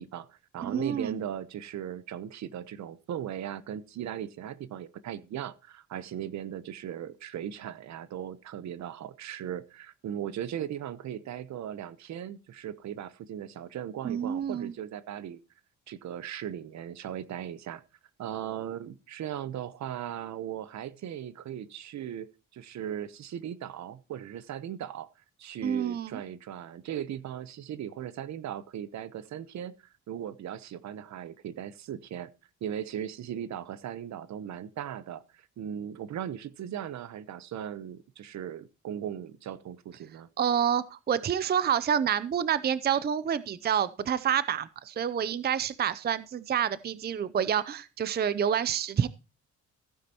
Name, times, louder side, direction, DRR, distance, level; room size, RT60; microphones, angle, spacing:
voice 1, 0.0-15.4 15.9-17.8 18.2-22.3 22.5-25.1 25.4-32.3 32.6-40.3, right 10 dB, 65° right, 0.9 m, -38 dB
voice 2, 0.6-1.2 14.0-14.7 25.6-26.1 40.4-49.1, right 8 dB, 35° right, 0.5 m, -28 dB
15.5 x 9.5 x 2.9 m
cardioid pair, 90°, 30 cm